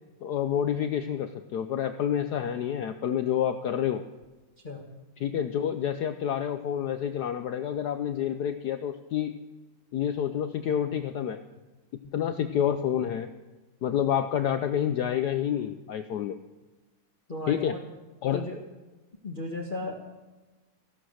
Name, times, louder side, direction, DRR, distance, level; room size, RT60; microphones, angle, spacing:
voice 1, 0.2-4.0 5.2-9.4 9.9-11.4 12.1-13.3 13.8-16.4 17.5-17.7 18.2-18.5, left 9 dB, 65° left, 9 dB, 1.1 m, -28 dB
voice 2, 17.3-17.8 18.3-18.6 19.2-19.9, left 2 dB, 30° left, 2 dB, 1.3 m, -35 dB
15.5 x 12.0 x 6.4 m, 1.2 s
omnidirectional pair, 2.1 m